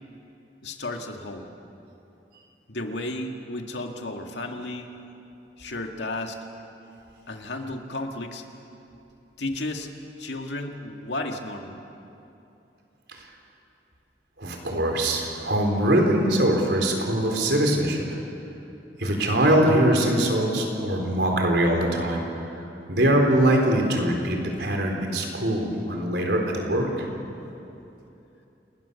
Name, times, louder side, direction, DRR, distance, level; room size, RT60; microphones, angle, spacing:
voice 1, 0.6-1.5 2.7-4.9 5.6-6.4 7.3-8.4 9.4-9.9 10.2-11.8, left 2 dB, 85° left, 4 dB, 2.0 m, -33 dB
voice 2, 14.4-18.1 19.0-22.2 22.9-27.0, right 1 dB, 70° right, 2 dB, 4.2 m, -22 dB
29.0 x 20.0 x 7.1 m, 2.8 s
head